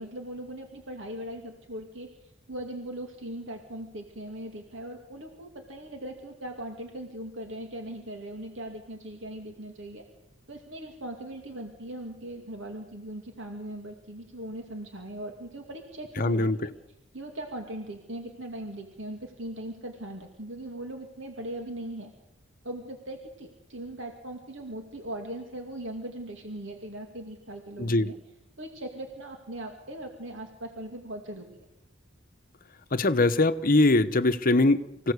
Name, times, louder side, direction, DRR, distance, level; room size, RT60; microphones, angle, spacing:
voice 1, 0.0-2.1 2.5-10.0 10.5-16.7 17.1-22.1 22.6-28.1 28.6-31.6, right 1 dB, 70° right, 2.5 m, -39 dB
voice 2, 16.2-16.6 27.8-28.1 32.9-35.1, left 2 dB, 45° left, 1.0 m, -22 dB
25.5 x 17.0 x 8.2 m
head